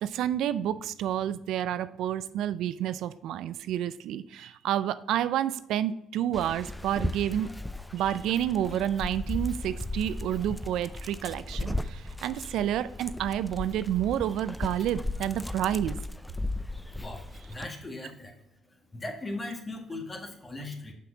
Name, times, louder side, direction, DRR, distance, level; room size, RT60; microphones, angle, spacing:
voice 1, 0.0-7.5 7.9-16.0, right 11 dB, 75° right, 14 dB, 0.3 m, -29 dB
Dog, 6.3-17.7, left 1 dB, 5° left, 0.4 m, -36 dB
voice 2, 17.0-18.4 18.9-20.9, left 2 dB, 30° left, 2 dB, 1.7 m, -38 dB
6.0 x 5.7 x 3.9 m, 0.81 s
supercardioid pair, 70°, 0 cm